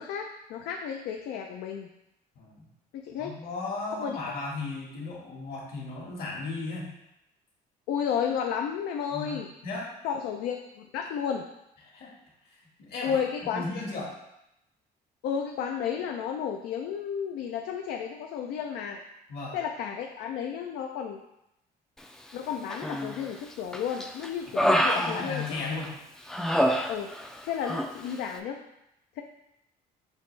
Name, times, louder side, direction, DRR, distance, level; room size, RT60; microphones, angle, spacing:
voice 1, 0.0-1.9 2.9-3.3 4.0-4.2 7.9-9.5 10.0-11.4 13.0-13.7 15.2-19.0 19.5-21.2 22.3-25.4 26.9-27.1 27.4-28.6 29.1-29.2, left 7 dB, 80° left, 3 dB, 0.4 m, -32 dB
voice 2, 2.3-2.7 3.2-6.9 9.1-9.9 11.9-12.1 12.5-13.2 13.5-14.1 19.3-19.6 24.5-24.7 24.9-25.9, left 3 dB, 65° left, -3 dB, 1.6 m, -36 dB
Human voice, 22.7-23.3 23.7-25.9 26.3-27.4 27.6-27.9, equal, 5° left, 0.3 m, -27 dB
6.2 x 2.5 x 3.2 m, 0.86 s
cardioid pair, 110°, 17 cm